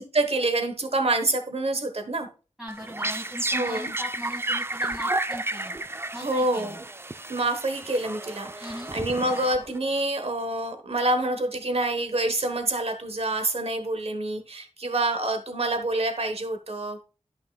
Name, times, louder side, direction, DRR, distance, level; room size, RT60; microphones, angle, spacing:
voice 1, 0.0-2.3 3.5-3.9 6.1-6.7 7.3-17.0, right 2 dB, 55° right, 1.2 m, -27 dB
voice 2, 2.6-5.8 6.1-6.8 8.6-8.9, left 1 dB, 5° right, 1.8 m, -39 dB
sound 1, 2.7-10.0, right 2 dB, 20° right, 0.4 m, -32 dB
11.5 x 5.8 x 2.3 m
wide cardioid pair, 70°, 12 cm